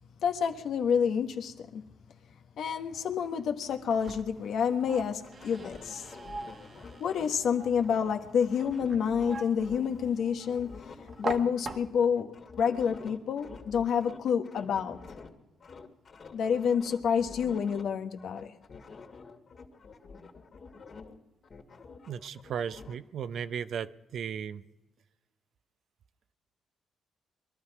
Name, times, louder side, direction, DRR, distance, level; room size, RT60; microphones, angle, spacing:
voice 1, 0.2-1.8 2.6-6.1 7.0-10.9 11.2-15.0 16.3-18.5, left 7 dB, 75° left, 1.3 m, -29 dB
sound 1, 3.7-12.2, right 3 dB, 50° right, 1.4 m, -43 dB
sound 2, 5.2-10.1 10.4-15.3 15.6-17.8 18.2-21.2 21.4-23.0, left 4 dB, 55° left, 2.2 m, -48 dB
voice 2, 22.1-24.6, right 7 dB, 70° right, 0.7 m, -36 dB
22.5 x 12.5 x 4.8 m
supercardioid pair, 55°, 0 cm